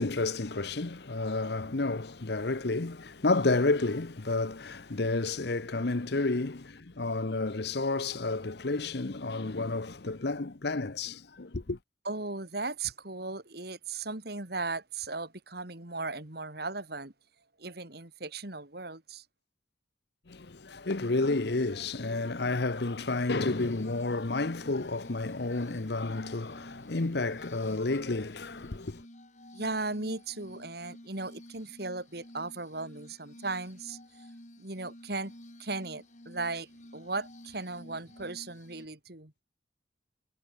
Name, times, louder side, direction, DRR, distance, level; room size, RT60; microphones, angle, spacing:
voice 1, 0.0-11.8 20.3-29.0, left 3 dB, 55° left, 0.9 m, -31 dB
voice 2, 12.0-17.1 17.6-19.2 29.5-34.0 34.6-35.3 35.6-39.3, right 3 dB, 55° right, 2.8 m, -37 dB
Glass, 23.1-38.9, left 1 dB, 40° left, 5.4 m, -52 dB
head